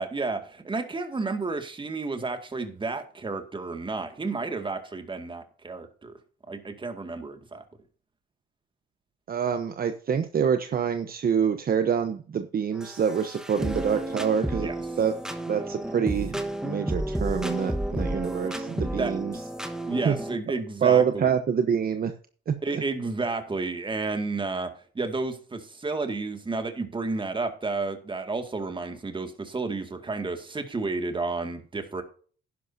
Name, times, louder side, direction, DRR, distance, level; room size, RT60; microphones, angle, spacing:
voice 1, 0.0-6.1 6.5-7.6 14.6-14.8 19.0-19.1 19.8-21.3 22.6-32.0, right 3 dB, 25° right, 6 dB, 2.1 m, -31 dB
voice 2, 9.3-14.7 15.0-15.1 15.5-16.4 16.6-19.4 20.0-20.2 20.8-22.1 22.5-22.8, right 7 dB, 50° right, 8 dB, 1.0 m, -26 dB
sound 1, 12.8-20.4, right 1 dB, 5° right, 1.3 m, -31 dB
11.0 x 11.0 x 2.7 m, 0.42 s
cardioid pair, 90°, 20 cm